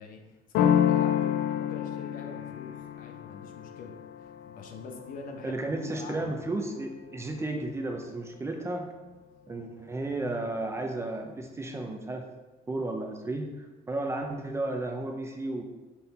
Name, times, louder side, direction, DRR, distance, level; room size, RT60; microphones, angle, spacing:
voice 1, 0.0-6.4, left 4 dB, 65° left, 3 dB, 1.0 m, -44 dB
sound 1, 0.5-6.1, left 9 dB, 85° left, 0.4 m, -29 dB
voice 2, 5.4-8.9 9.5-12.3 12.7-15.6, right 2 dB, 15° right, 3 dB, 0.6 m, -33 dB
5.7 x 3.8 x 4.3 m, 1.1 s
cardioid pair, 125°, 15 cm